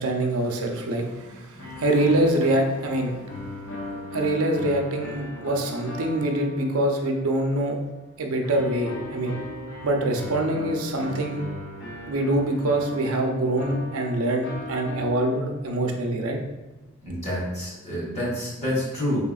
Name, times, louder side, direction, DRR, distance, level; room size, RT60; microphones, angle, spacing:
voice 1, 0.0-3.1 4.1-7.8 8.2-9.4 9.8-11.4 12.1-16.4, right 1 dB, 90° right, 2 dB, 0.6 m, -24 dB
sound 1, 1.6-7.4 8.4-15.8, left 1 dB, 60° left, 0.9 m, -37 dB
voice 2, 17.0-19.2, equal, 30° left, -6 dB, 1.5 m, -28 dB
4.9 x 3.4 x 2.3 m, 1.1 s
head